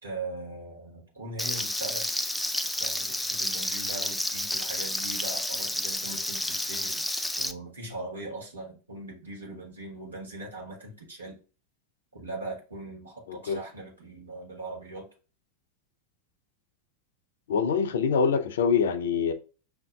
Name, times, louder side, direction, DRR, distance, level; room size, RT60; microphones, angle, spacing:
voice 1, 0.0-2.1 2.8-7.1 7.4-11.4 12.1-15.0, right 2 dB, 85° right, 1.4 m, -40 dB
Frying (food), 1.4-7.5, left 1 dB, 5° left, 0.4 m, -30 dB
voice 2, 13.3-13.6 17.5-19.3, left 6 dB, 70° left, 0.5 m, -25 dB
5.6 x 2.6 x 2.3 m
figure-of-eight pair, 90°, 0 cm